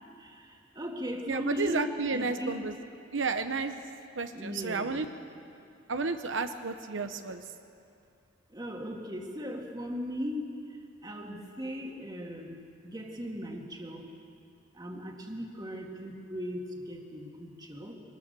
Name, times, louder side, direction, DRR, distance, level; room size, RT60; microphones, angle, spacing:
voice 1, 0.2-1.8 2.1-2.6 4.3-5.0 8.5-12.6 12.8-14.1 14.7-17.9, equal, 20° right, 1 dB, 2.1 m, -38 dB
voice 2, 1.3-2.8 3.1-3.8 4.2-5.1 5.9-7.5, right 4 dB, 85° right, 8 dB, 0.9 m, -32 dB
23.0 x 20.0 x 6.8 m, 2.5 s
head